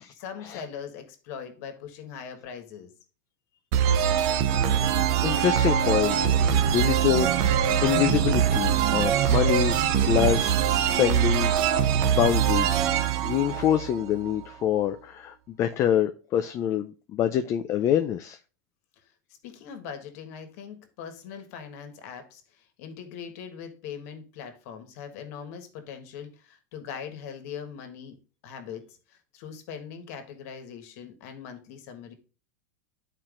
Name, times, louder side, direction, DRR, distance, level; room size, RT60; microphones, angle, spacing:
voice 1, 0.1-2.9 19.4-22.4 22.8-28.2 28.4-32.1, left 7 dB, 65° left, 1.4 m, -41 dB
sound 1, 3.7-14.3, right 9 dB, 55° right, 0.6 m, -23 dB
voice 2, 5.2-9.8 10.1-12.8 13.2-18.4, left 10 dB, 35° left, 0.4 m, -26 dB
11.0 x 4.4 x 2.5 m
supercardioid pair, 125°, 9 cm